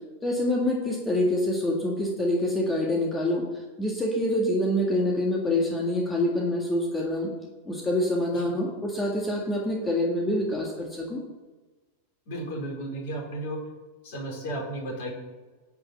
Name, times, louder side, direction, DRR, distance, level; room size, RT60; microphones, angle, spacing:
voice 1, 0.2-3.4 3.8-7.3 7.7-11.2, left 1 dB, 10° left, -2 dB, 2.0 m, -26 dB
voice 2, 12.3-13.6 14.0-15.1, right 1 dB, 50° left, -1 dB, 4.3 m, -34 dB
11.0 x 5.4 x 7.4 m, 1.2 s
figure-of-eight pair, 90°, 0 cm